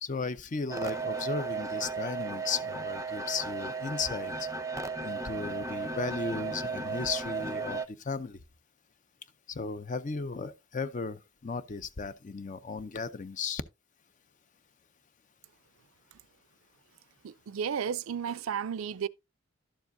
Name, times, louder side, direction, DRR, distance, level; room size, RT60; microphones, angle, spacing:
voice 1, 0.0-4.5 5.0-8.4 9.5-13.6, left 4 dB, 40° left, 0.5 m, -35 dB
sound 1, 0.7-7.9, right 4 dB, 15° right, 0.7 m, -35 dB
voice 2, 17.2-19.1, right 7 dB, 90° right, 0.4 m, -33 dB
11.5 x 7.1 x 2.6 m
head